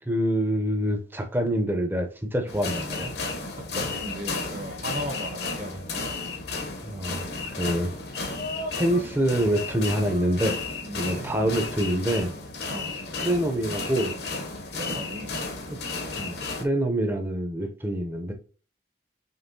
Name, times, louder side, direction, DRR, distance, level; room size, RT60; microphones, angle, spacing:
voice 1, 0.0-3.1 5.6-5.8 6.8-8.0 8.7-10.6 10.9-12.3 13.2-14.1 15.7-15.8 16.2-18.3, right 1 dB, 10° right, 4 dB, 0.6 m, -26 dB
sound 1, 2.5-16.6, left 3 dB, 55° left, 0.8 m, -33 dB
voice 2, 3.5-6.2 10.8-11.5 12.7-13.0 14.7-15.4, right 1 dB, 45° right, 5 dB, 0.9 m, -37 dB
5.4 x 3.2 x 2.7 m, 0.37 s
head